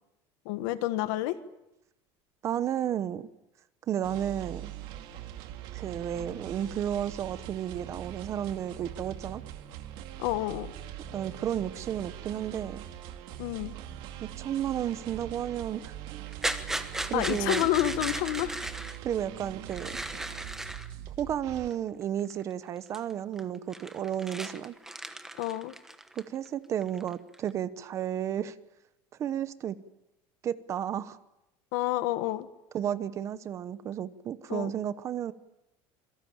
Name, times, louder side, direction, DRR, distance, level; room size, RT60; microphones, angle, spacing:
voice 1, 0.5-1.4 10.2-10.7 13.4-13.7 17.1-18.6 25.4-25.7 31.7-32.5 34.5-34.7, left 15 dB, 75° left, 11 dB, 1.7 m, -29 dB
voice 2, 2.4-3.3 3.9-4.7 5.7-9.4 11.1-12.8 14.2-15.9 17.1-17.7 19.0-20.0 21.2-24.7 26.2-28.6 29.2-29.8 30.4-31.2 32.7-35.3, right 10 dB, 30° right, 15 dB, 0.9 m, -32 dB
sound 1, 4.0-21.7, right 11 dB, 55° right, 2.3 m, -42 dB
sound 2, 16.3-19.0 19.7-20.9 21.7-21.8 22.3-22.6 22.9-23.1 23.4-26.5 26.8-27.5, right 1 dB, 5° right, 1.1 m, -36 dB
27.0 x 22.0 x 8.8 m, 0.91 s
cardioid pair, 170°, 10 cm